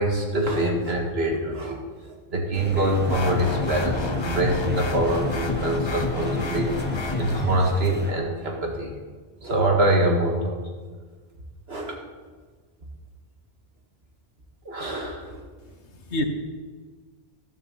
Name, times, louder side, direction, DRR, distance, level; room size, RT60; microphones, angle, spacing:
voice 1, 0.0-1.8 2.0-6.7 7.2-8.9 9.4-10.6 11.7-12.0 14.7-15.4, right 1 dB, 65° right, 1 dB, 2.2 m, -24 dB
sound 1, 2.5-8.1, right 1 dB, 10° right, 1.1 m, -35 dB
sound 2, 3.1-7.5, left 3 dB, 30° left, 0.7 m, -28 dB
voice 2, 15.6-16.2, left 1 dB, 85° left, 5 dB, 1.6 m, -30 dB
13.0 x 12.0 x 4.2 m, 1.5 s
omnidirectional pair, 1.1 m